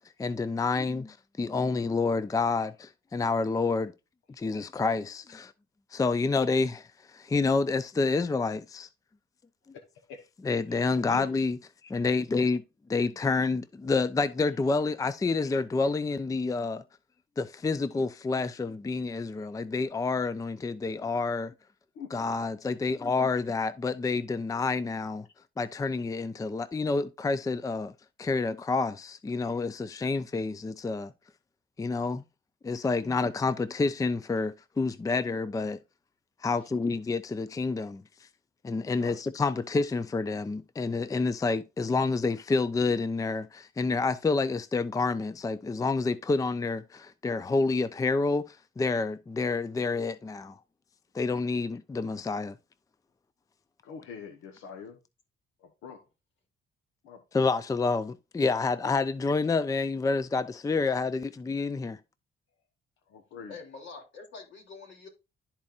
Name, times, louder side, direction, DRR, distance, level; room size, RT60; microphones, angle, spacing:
voice 1, 0.2-3.9 4.3-5.5 5.9-8.9 10.4-12.6 12.9-16.8 17.4-21.5 22.1-25.3 25.6-27.9 28.2-31.1 31.8-32.2 32.6-35.8 36.4-38.0 38.6-50.6 51.1-52.6 57.3-62.0, left 3 dB, 15° left, 0.4 m, -28 dB
voice 2, 10.7-11.3 21.9-22.3 39.0-39.2 53.8-55.0 55.8-56.0 57.1-57.2 63.1-63.6, left 6 dB, 90° left, 1.1 m, -43 dB
voice 3, 63.5-65.1, left 4 dB, 65° left, 3.0 m, -45 dB
12.0 x 4.3 x 2.4 m
cardioid pair, 90°, 20 cm